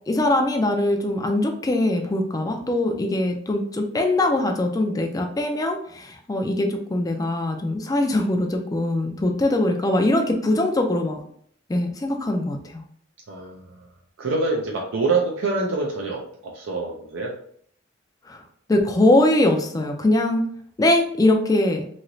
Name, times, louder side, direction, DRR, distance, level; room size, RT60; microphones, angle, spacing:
voice 1, 0.1-11.2 11.7-12.8 18.3-18.4 18.7-20.5 20.8-21.9, left 1 dB, 20° left, 3 dB, 0.3 m, -22 dB
voice 2, 13.3-13.6 14.2-17.3, right 3 dB, 80° right, -1 dB, 0.5 m, -25 dB
3.1 x 2.8 x 2.6 m, 0.62 s
head